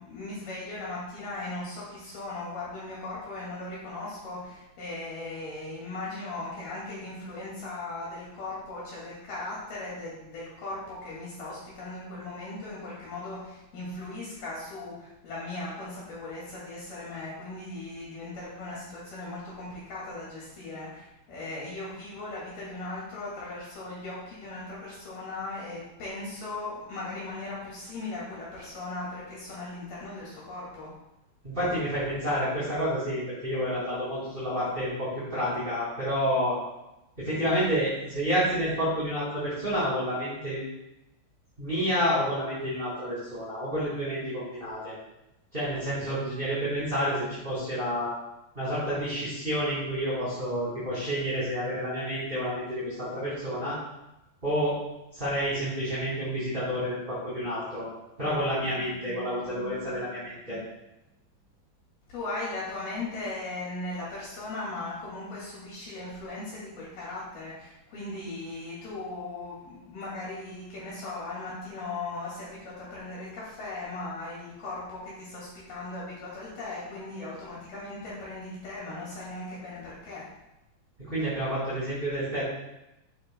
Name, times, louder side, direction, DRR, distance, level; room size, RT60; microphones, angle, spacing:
voice 1, 0.1-30.9 62.1-80.2, left 2 dB, 60° left, -7 dB, 3.9 m, -38 dB
voice 2, 31.4-36.6 37.2-40.6 41.6-44.9 45.5-48.1 48.5-53.8 54.4-54.7 55.1-57.9 58.2-60.6 81.1-82.4, equal, 15° right, -11 dB, 3.3 m, -29 dB
13.5 x 9.6 x 2.3 m, 0.92 s
omnidirectional pair, 5.1 m